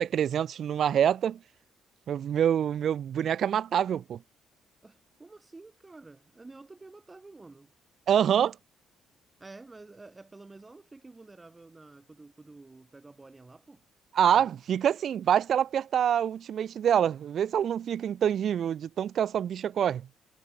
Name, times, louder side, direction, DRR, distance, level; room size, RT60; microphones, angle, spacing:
voice 1, 0.0-1.4 2.1-4.2 8.1-8.6 14.1-20.1, right 9 dB, 45° right, 0.5 m, -26 dB
voice 2, 4.8-7.7 9.4-13.8 14.3-14.6, right 3 dB, 15° right, 6.4 m, -50 dB
cardioid pair, 175°, 0 cm